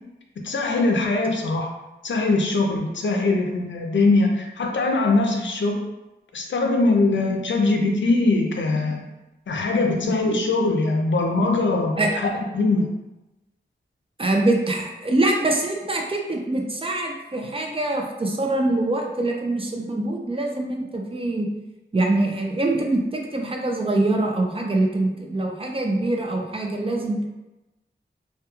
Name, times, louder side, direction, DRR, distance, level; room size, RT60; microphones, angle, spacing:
voice 1, 0.4-1.7 2.0-5.8 6.3-9.1 9.5-12.9, left 3 dB, 80° left, 1 dB, 0.5 m, -22 dB
voice 2, 14.2-21.5 21.9-27.2, right 2 dB, 30° right, 0 dB, 0.4 m, -24 dB
2.2 x 2.2 x 2.9 m, 1.0 s
wide cardioid pair, 75°, 19 cm